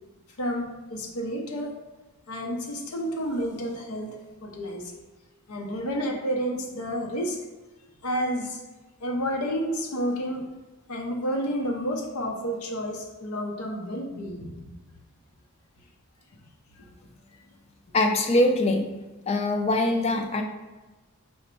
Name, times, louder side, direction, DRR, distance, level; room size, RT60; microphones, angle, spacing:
voice 1, 0.4-1.7 2.3-4.9 5.5-7.4 8.0-8.6 9.0-10.5 10.9-14.6 16.8-16.9, equal, 80° left, 1 dB, 0.6 m, -30 dB
voice 2, 17.9-18.9 19.3-20.4, left 1 dB, 30° left, 4 dB, 0.3 m, -23 dB
4.9 x 2.1 x 4.3 m, 1.2 s
head